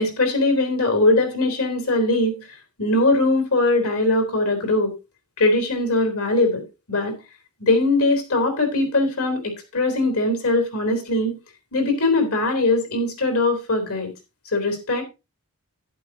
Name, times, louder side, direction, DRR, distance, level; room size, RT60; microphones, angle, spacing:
voice 1, 0.0-2.5 2.8-4.9 5.4-6.6 6.9-7.2 7.6-11.4 11.7-14.1 14.5-15.0, left 2 dB, 75° left, 6 dB, 3.5 m, -21 dB
11.5 x 9.8 x 2.8 m, 0.26 s
head